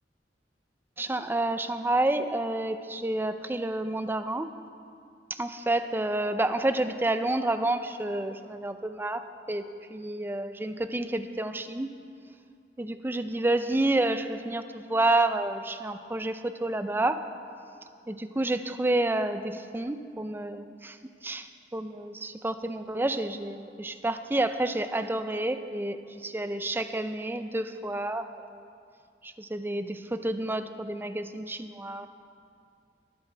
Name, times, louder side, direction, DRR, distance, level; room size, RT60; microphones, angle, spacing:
voice 1, 1.0-4.5 5.3-11.9 12.8-17.2 18.1-21.0 21.2-21.5 21.7-28.7 29.2-32.1, right 2 dB, 10° right, 9 dB, 0.5 m, -29 dB
22.0 x 7.5 x 4.5 m, 2.3 s
head